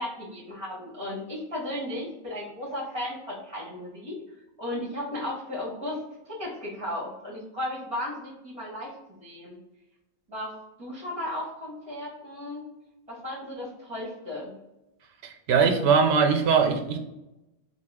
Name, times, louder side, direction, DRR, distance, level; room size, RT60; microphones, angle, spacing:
voice 1, 0.0-4.2 4.6-6.0 6.2-8.9 9.2-9.6 10.3-12.7 13.1-14.5, left 1 dB, 30° right, -7 dB, 1.7 m, -35 dB
voice 2, 15.2-17.0, right 5 dB, 70° right, 5 dB, 0.8 m, -21 dB
3.5 x 2.4 x 3.5 m, 0.92 s
omnidirectional pair, 1.1 m